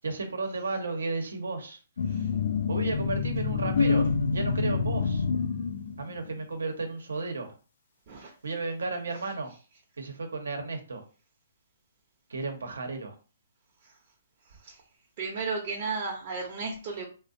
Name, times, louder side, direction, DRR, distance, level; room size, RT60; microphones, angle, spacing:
voice 1, 0.0-1.8 2.1-2.3 2.7-5.2 6.0-7.5 8.4-9.5 10.0-11.0 12.3-13.2, right 3 dB, 85° right, 4 dB, 0.7 m, -33 dB
sound 1, 2.0-6.2, left 5 dB, 70° left, 0.4 m, -27 dB
voice 2, 14.4-14.8 15.2-17.1, right 4 dB, 40° right, -3 dB, 0.6 m, -34 dB
2.5 x 2.0 x 2.5 m, 0.36 s
hypercardioid pair, 145°, 0 cm